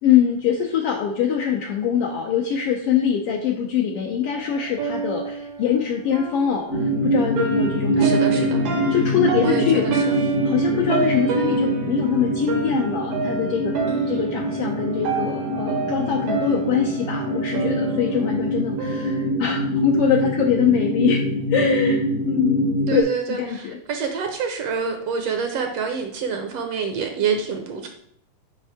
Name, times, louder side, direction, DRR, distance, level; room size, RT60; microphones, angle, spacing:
voice 1, 0.0-8.5 8.9-13.8 14.1-21.2 21.5-23.8, left 8 dB, 75° left, 2 dB, 1.4 m, -23 dB
sound 1, 4.4-19.3, right 4 dB, 90° right, 2.7 m, -29 dB
sound 2, 6.7-23.0, right 1 dB, 55° right, 1.0 m, -24 dB
voice 2, 8.0-8.6 9.4-10.2 13.9-14.4 22.9-27.9, right 6 dB, 75° right, 4 dB, 1.6 m, -27 dB
7.2 x 5.2 x 3.5 m, 0.68 s
omnidirectional pair, 3.3 m